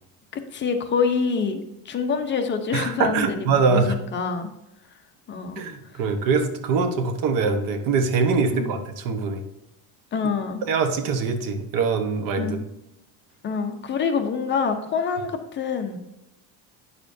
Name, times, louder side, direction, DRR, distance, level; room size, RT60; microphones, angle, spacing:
voice 1, 0.5-3.3 3.6-4.5 5.3-5.6 8.5-8.8 10.1-10.6 12.4-12.7 13.4-16.0, left 5 dB, 30° left, 6 dB, 0.8 m, -26 dB
voice 2, 2.7-3.9 5.6-9.4 10.6-12.6, right 4 dB, 60° right, 7 dB, 1.3 m, -23 dB
9.3 x 6.8 x 2.7 m, 0.90 s
cardioid pair, 150°, 37 cm